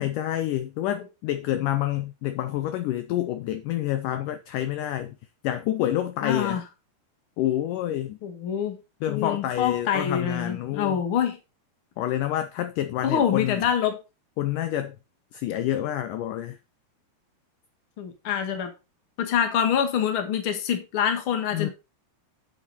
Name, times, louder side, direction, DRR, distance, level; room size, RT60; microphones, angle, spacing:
voice 1, 0.0-5.1 5.4-6.6 7.4-8.2 9.0-11.0 12.0-13.6 14.4-15.0 15.3-16.6 21.5-21.7, left 12 dB, 80° left, 1.9 m, -28 dB
voice 2, 6.2-6.6 8.2-8.8 9.1-11.4 13.0-14.0 18.0-18.7 19.2-21.7, left 8 dB, 50° left, 1.8 m, -25 dB
9.8 x 7.2 x 4.2 m
omnidirectional pair, 4.6 m